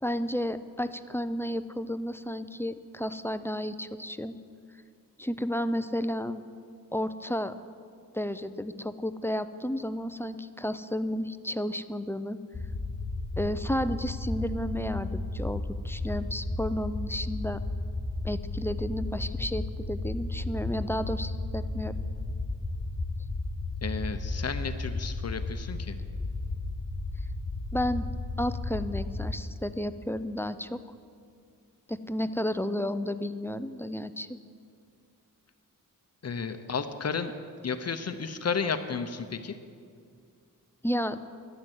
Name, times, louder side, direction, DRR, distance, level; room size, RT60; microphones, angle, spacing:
voice 1, 0.0-4.4 5.2-6.4 6.9-7.5 8.1-12.4 13.4-17.6 18.2-22.0 27.7-28.1 28.4-30.8 31.9-34.4 40.8-41.2, equal, 5° left, 11 dB, 0.4 m, -32 dB
sound 1, 12.5-29.3, left 2 dB, 30° left, 1.2 m, -34 dB
voice 2, 23.8-26.0 36.2-37.3 37.6-39.6, left 5 dB, 45° left, 9 dB, 0.7 m, -32 dB
12.0 x 11.0 x 7.9 m, 2.3 s
wide cardioid pair, 160°, 34 cm